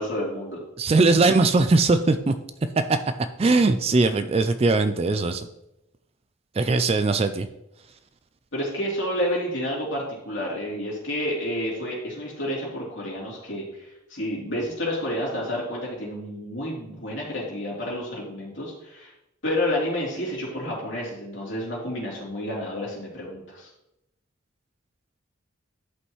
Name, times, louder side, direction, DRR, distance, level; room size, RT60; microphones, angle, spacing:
voice 1, 0.0-0.6 8.5-19.1 19.4-23.7, left 1 dB, 60° left, -4 dB, 3.1 m, -30 dB
voice 2, 0.8-2.3 2.8-3.0 3.4-5.5 6.6-7.5, right 3 dB, 30° right, 10 dB, 0.3 m, -20 dB
11.5 x 5.4 x 3.1 m, 0.86 s
head